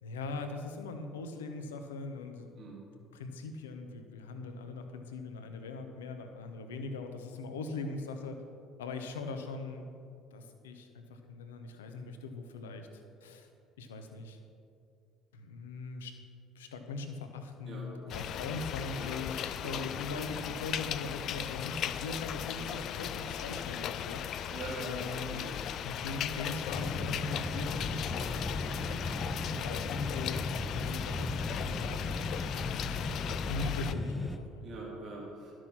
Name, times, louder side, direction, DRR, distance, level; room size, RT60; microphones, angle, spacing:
voice 1, 0.0-2.7 3.1-8.4 8.8-9.8 10.3-13.5 13.8-14.4 15.3-16.1 16.5-24.2 24.8-25.5 25.8-28.6 29.6-31.3 31.6-32.0 32.3-34.7, left 3 dB, 70° left, 6 dB, 0.8 m, -41 dB
sound 1, 18.1-33.9, left 9 dB, 50° left, 0.3 m, -37 dB
voice 2, 24.5-25.5 28.1-29.0 34.6-35.5, right 3 dB, 40° right, -4 dB, 2.5 m, -44 dB
sound 2, 26.7-34.4, left 2 dB, 10° left, 0.6 m, -37 dB
12.0 x 6.3 x 5.9 m, 2.4 s
figure-of-eight pair, 55°, 0 cm